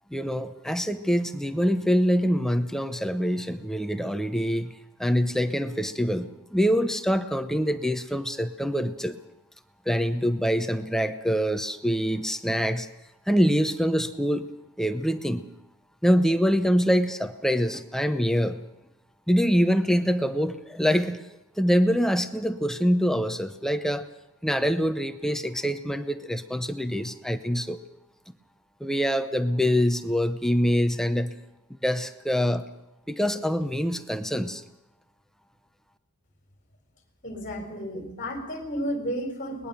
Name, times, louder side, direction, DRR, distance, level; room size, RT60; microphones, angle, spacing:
voice 1, 0.1-9.2 9.9-12.9 13.3-14.5 14.8-15.5 16.0-18.6 19.3-21.2 21.6-24.1 24.4-27.8 28.8-31.3 31.8-32.7 33.1-34.6, equal, ahead, 9 dB, 0.7 m, -25 dB
voice 2, 37.2-39.7, equal, 35° left, 5 dB, 4.0 m, -32 dB
22.0 x 20.0 x 6.8 m, 0.92 s
head